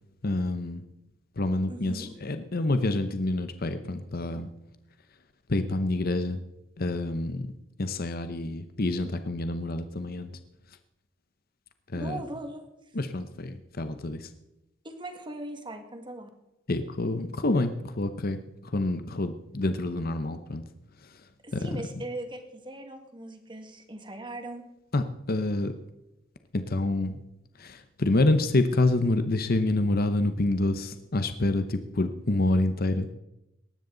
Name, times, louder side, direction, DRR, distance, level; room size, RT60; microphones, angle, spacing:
voice 1, 0.2-0.8 1.4-4.5 5.5-6.4 6.8-7.5 7.8-10.3 11.9-12.2 12.9-14.3 16.7-20.6 21.0-21.3 21.5-21.8 24.9-25.7 26.5-27.2 27.6-33.1, left 2 dB, 50° left, 10 dB, 0.9 m, -27 dB
voice 2, 1.7-2.2 11.9-12.7 14.8-16.3 21.4-24.6, right 1 dB, 25° right, 6 dB, 1.9 m, -39 dB
18.5 x 13.0 x 4.0 m, 0.89 s
head